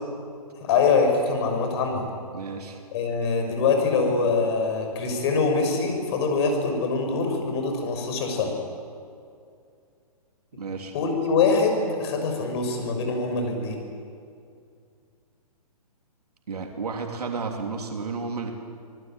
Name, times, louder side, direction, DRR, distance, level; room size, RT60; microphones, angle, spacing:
voice 1, 0.6-2.1 2.9-8.5 10.9-13.8, left 4 dB, 45° left, 3 dB, 6.5 m, -24 dB
voice 2, 2.3-2.8 10.6-10.9 16.5-18.5, right 4 dB, 80° right, 2 dB, 3.3 m, -32 dB
27.5 x 19.5 x 9.1 m, 2.4 s
hypercardioid pair, 145°, 20 cm